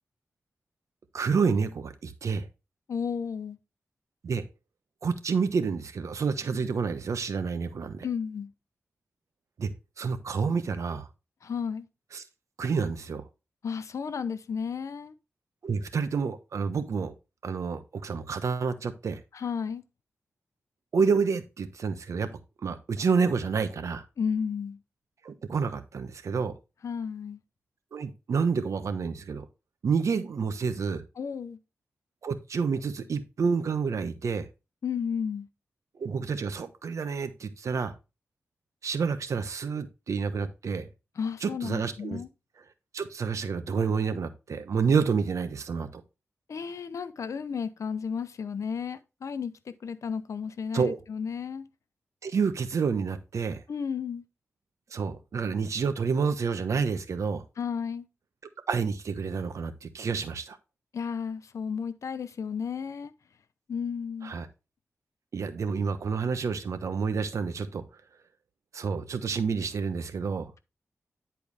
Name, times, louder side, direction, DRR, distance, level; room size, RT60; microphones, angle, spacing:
voice 1, 1.1-2.5 4.2-4.4 5.0-8.1 9.6-9.7 10.0-11.1 12.1-12.2 12.6-13.3 15.6-17.1 17.4-19.2 20.9-22.3 22.6-24.1 25.2-26.5 27.9-29.4 29.8-31.0 32.2-34.5 36.0-37.9 38.8-40.9 41.4-42.2 42.9-46.0 50.7-51.0 52.2-53.6 54.9-57.4 58.7-60.6 64.2-64.5 65.3-67.8 68.7-70.5, right 5 dB, 80° right, 1.0 m, -29 dB
voice 2, 2.9-3.6 8.0-8.5 11.4-11.9 13.6-15.1 19.3-19.8 24.2-24.8 26.8-27.4 31.2-31.6 34.8-35.5 41.2-42.3 46.5-51.6 53.7-54.2 57.6-58.1 60.9-63.1 63.7-64.3, left 6 dB, 80° left, 0.7 m, -33 dB
10.0 x 4.6 x 3.4 m
wide cardioid pair, 80°, 5 cm